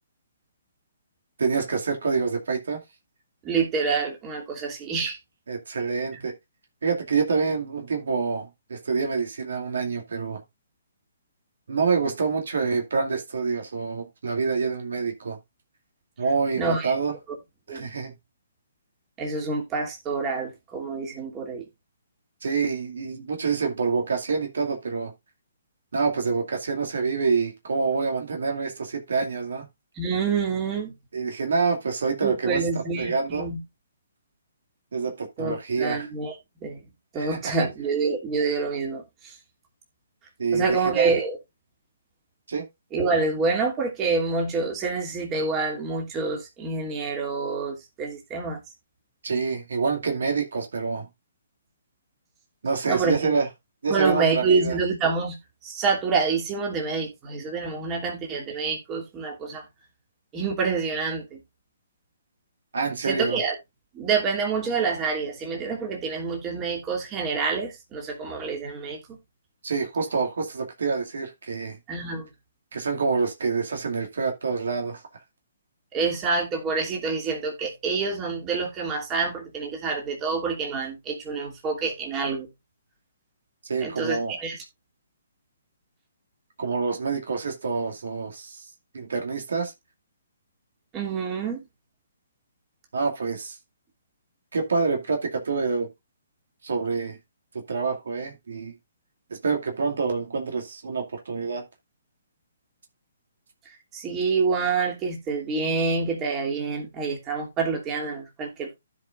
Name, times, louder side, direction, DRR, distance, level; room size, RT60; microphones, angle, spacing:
voice 1, 1.4-2.8 5.5-6.3 6.8-10.4 11.7-15.4 16.2-17.1 17.7-18.1 22.4-25.1 25.9-29.7 31.1-32.6 33.0-33.5 34.9-36.1 37.2-37.7 40.4-41.1 42.5-42.6 49.2-51.1 52.6-53.5 53.8-54.8 62.7-63.4 69.6-71.8 72.7-75.0 83.7-84.4 86.6-88.6 88.9-89.7 92.9-93.6 94.5-95.9 96.6-97.2 97.5-98.7 99.4-101.6, right 4 dB, 70° right, 2.4 m, -27 dB
voice 2, 3.4-5.2 16.5-16.9 17.7-17.9 19.2-21.6 30.0-30.9 32.2-33.6 35.4-36.3 36.6-36.8 37.1-39.4 40.5-41.4 42.9-48.6 52.9-53.3 53.9-55.4 55.6-59.6 60.3-61.4 63.0-63.5 63.9-69.0 71.9-72.3 75.9-82.5 83.8-84.6 90.9-91.6 103.9-108.8, right 4 dB, 20° right, 2.8 m, -27 dB
15.0 x 5.2 x 2.5 m
figure-of-eight pair, 135°, 0 cm